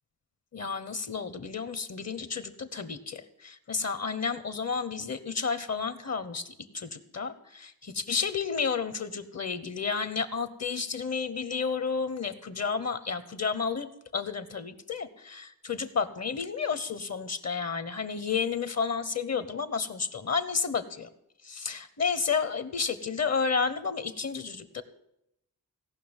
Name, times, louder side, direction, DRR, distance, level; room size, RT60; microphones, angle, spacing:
voice 1, 0.5-13.9 14.1-21.1 21.4-24.8, left 5 dB, 45° left, 13 dB, 1.0 m, -31 dB
16.5 x 5.9 x 8.8 m, 0.79 s
wide cardioid pair, 90°, 36 cm